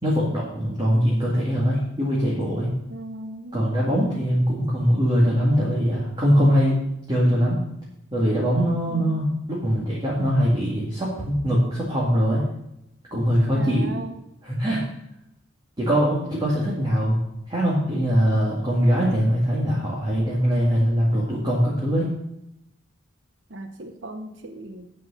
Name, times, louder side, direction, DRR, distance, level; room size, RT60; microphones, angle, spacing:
voice 1, 0.0-2.7 3.5-6.8 7.1-7.6 8.1-12.4 13.1-14.0 14.4-14.8 15.8-22.1, equal, 25° right, -6 dB, 2.2 m, -22 dB
voice 2, 2.9-3.8 8.9-9.3 13.5-14.2 23.5-24.9, right 1 dB, 65° right, 7 dB, 0.9 m, -37 dB
9.2 x 6.3 x 7.1 m, 0.84 s
head